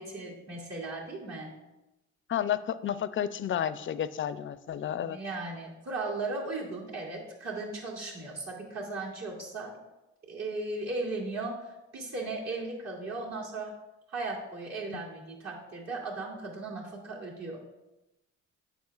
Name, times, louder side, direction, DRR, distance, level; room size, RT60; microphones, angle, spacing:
voice 1, 0.0-1.5 5.0-9.7 10.3-13.7 14.1-17.7, right 3 dB, 60° right, -4 dB, 2.4 m, -37 dB
voice 2, 2.3-5.2 14.9-15.0, left 9 dB, 45° left, 14 dB, 0.4 m, -31 dB
10.5 x 7.5 x 2.4 m, 0.98 s
cardioid pair, 90°, 30 cm